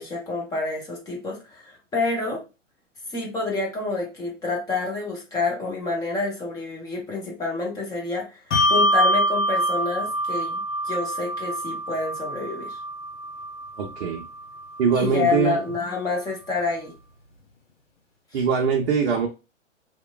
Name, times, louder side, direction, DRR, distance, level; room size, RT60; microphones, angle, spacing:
voice 1, 0.0-2.4 3.1-8.4 8.7-12.8 14.9-16.9, left 3 dB, 10° left, -1 dB, 0.6 m, -28 dB
Bell, 8.5-15.4, equal, 65° left, 1.0 m, -25 dB
voice 2, 13.8-14.2 14.8-15.6 18.3-19.3, right 6 dB, 50° right, 1 dB, 0.6 m, -22 dB
2.9 x 2.2 x 2.3 m, 0.29 s
hypercardioid pair, 125°, 38 cm